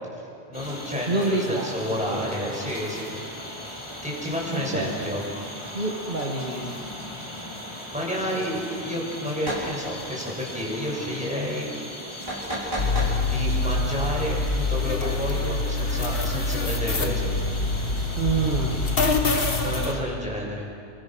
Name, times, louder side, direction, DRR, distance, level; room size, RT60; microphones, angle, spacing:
sound 1, 0.5-20.0, left 1 dB, 25° left, 2.9 m, -38 dB
voice 1, 0.5-3.2 4.0-5.2 7.9-11.7 13.2-17.3 19.6-20.7, equal, 5° right, -3 dB, 6.5 m, -30 dB
voice 2, 1.1-2.3 4.5-5.0 5.7-6.7 18.2-18.8, right 3 dB, 50° right, -1 dB, 2.0 m, -27 dB
sound 2, 9.4-9.7 12.3-13.2, right 1 dB, 25° right, 5.9 m, -30 dB
sound 3, 12.8-19.9, left 3 dB, 60° left, 1.8 m, -25 dB
28.5 x 23.5 x 6.3 m, 2.6 s
omnidirectional pair, 1.1 m